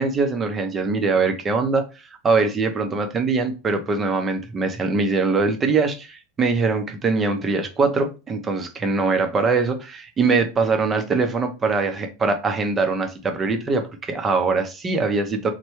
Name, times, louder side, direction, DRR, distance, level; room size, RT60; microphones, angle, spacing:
voice 1, 0.0-1.8 2.2-15.5, right 4 dB, 25° right, 0.6 m, -22 dB
3.1 x 2.2 x 3.0 m
hypercardioid pair, 95°, 0 cm